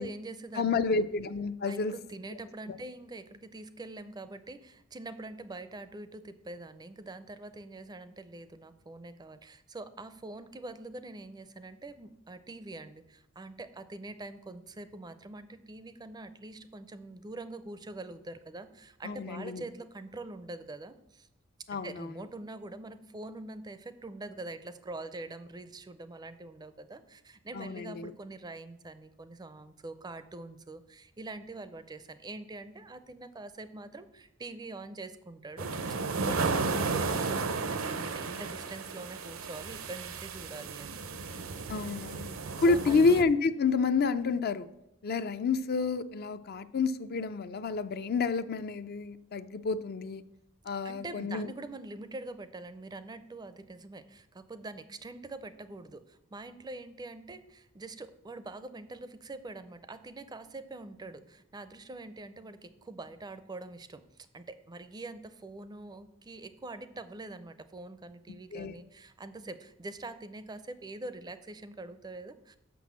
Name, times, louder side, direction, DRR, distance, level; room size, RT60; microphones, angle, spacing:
voice 1, 0.0-1.1 1.7-21.3 21.7-41.3 42.3-43.0 50.8-72.6, right 2 dB, 20° right, 12 dB, 0.4 m, -44 dB
voice 2, 0.6-1.9 2.7-2.8 19.0-19.6 21.7-22.1 27.5-28.1 41.7-42.3 42.6-44.7 45.0-50.2 50.7-51.5 68.5-68.8, left 4 dB, 50° left, 12 dB, 0.4 m, -29 dB
sound 1, 35.6-43.2, right 4 dB, 75° right, 0.7 m, -34 dB
6.1 x 6.0 x 7.2 m, 0.83 s
head